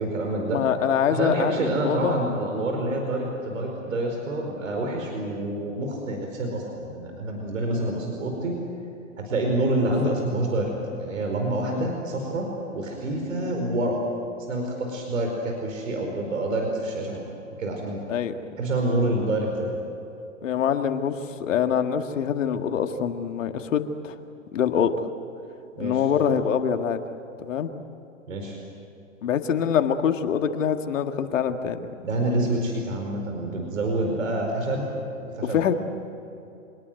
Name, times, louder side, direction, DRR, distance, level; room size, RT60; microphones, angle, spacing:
voice 1, 0.0-0.6 1.1-8.5 9.2-10.7 11.0-14.0 14.5-17.2 17.6-18.0 18.6-19.7 25.8-26.0 28.3-28.6 32.0-34.8 35.2-35.7, right 1 dB, 75° right, 1 dB, 4.9 m, -27 dB
voice 2, 0.5-2.2 9.9-10.1 11.7-11.9 13.4-13.5 18.1-18.3 20.4-24.2 24.5-25.1 25.8-27.0 27.4-27.7 29.2-31.9 35.5-35.7, left 8 dB, 70° left, 7 dB, 2.0 m, -25 dB
26.5 x 20.0 x 9.4 m, 2.9 s
hypercardioid pair, 120°, 39 cm